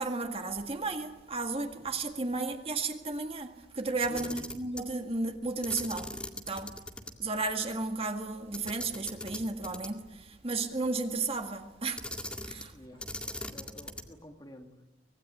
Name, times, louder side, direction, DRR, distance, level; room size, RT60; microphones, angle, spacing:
voice 1, 0.0-6.2 6.5-6.8 7.2-12.1 12.4-12.7, right 3 dB, 30° right, 1.9 m, -33 dB
Camera, 4.0-4.9 5.6-7.1 7.4-7.5 8.5-10.1 12.0-12.7 13.0-14.2, left 1 dB, 5° left, 2.0 m, -40 dB
voice 2, 4.1-4.4 12.7-14.8, left 1 dB, 20° left, 2.3 m, -49 dB
25.0 x 20.0 x 9.9 m
head